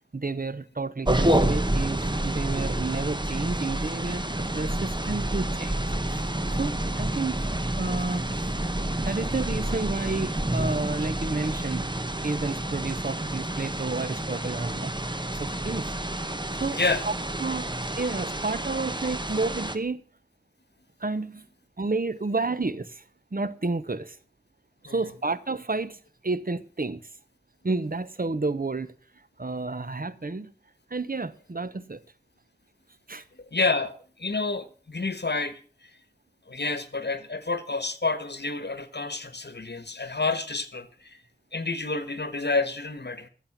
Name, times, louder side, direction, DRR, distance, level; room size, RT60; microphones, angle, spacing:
voice 1, 0.1-6.2 6.6-7.5 7.7-8.5 9.0-15.9 16.6-16.8 17.1-17.2 17.4-17.7 17.9-20.0 21.0-21.5 21.8-23.0 23.3-24.2 24.8-27.1 27.6-28.9 29.4-30.5 30.9-32.0 33.1-33.2, right 3 dB, 55° right, 0.9 m, -31 dB
sound 1, 1.1-19.8, right 1 dB, 25° right, 1.2 m, -29 dB
voice 2, 16.7-17.0 24.8-25.0 33.3-35.9 36.5-41.2 41.5-43.3, left 3 dB, 70° left, 1.4 m, -29 dB
13.5 x 7.4 x 7.3 m
wide cardioid pair, 45°, 18 cm